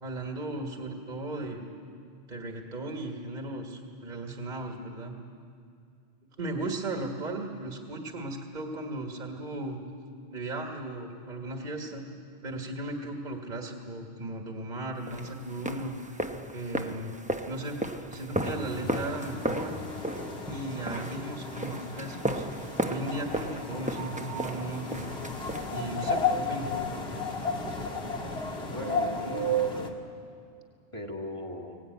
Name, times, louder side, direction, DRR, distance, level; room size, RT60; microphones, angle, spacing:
voice 1, 0.0-1.7 2.3-5.1 6.4-9.8 10.3-12.0 12.4-16.2 16.5-17.2 17.4-19.7 20.5-22.5 22.8-25.1 25.7-26.7, right 2 dB, 45° right, 2 dB, 1.8 m, -36 dB
sound 1, 15.1-26.2, right 1 dB, 10° right, 0.8 m, -35 dB
sound 2, 18.4-29.9, left 2 dB, 75° left, 2.0 m, -33 dB
voice 2, 28.7-30.0 30.9-31.8, left 2 dB, 30° left, 0 dB, 2.3 m, -38 dB
23.0 x 18.5 x 9.3 m, 2.3 s
omnidirectional pair, 1.1 m